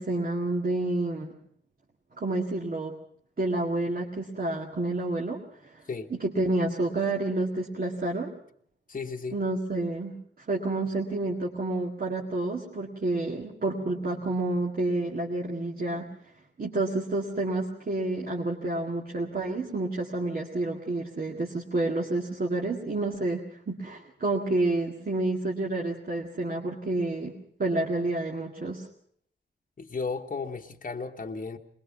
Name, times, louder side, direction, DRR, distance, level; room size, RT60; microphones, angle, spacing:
voice 1, 0.0-1.3 2.2-3.0 3.4-5.8 6.1-8.3 9.3-10.1 10.5-16.1 16.6-23.4 23.7-28.9, right 2 dB, 50° right, -1 dB, 2.0 m, -29 dB
voice 2, 8.9-9.4 29.8-31.6, left 4 dB, 45° left, 3 dB, 1.2 m, -34 dB
21.5 x 21.5 x 5.9 m, 0.63 s
wide cardioid pair, 105°, 20 cm